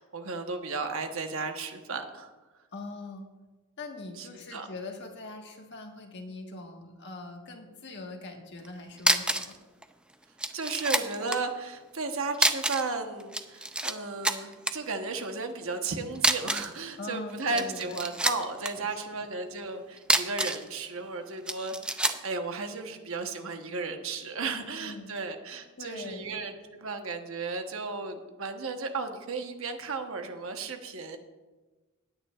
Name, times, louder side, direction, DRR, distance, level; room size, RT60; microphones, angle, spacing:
voice 1, 0.0-2.3 4.2-4.7 10.5-31.2, right 3 dB, 65° right, 5 dB, 1.1 m, -34 dB
voice 2, 2.7-3.3 3.8-9.5 17.0-18.0 18.7-19.2 24.4-25.1 25.8-26.4, left 2 dB, 50° left, 2 dB, 1.5 m, -42 dB
sound 1, 8.6-8.7 9.0-9.6 9.8-9.9 10.4-11.4 12.3-12.9 13.2-13.9 14.2-14.7 16.2-16.8 17.4-18.7 20.0-20.7 21.5-22.3, right 1 dB, 5° right, 0.4 m, -27 dB
19.0 x 9.5 x 2.4 m, 1.2 s
head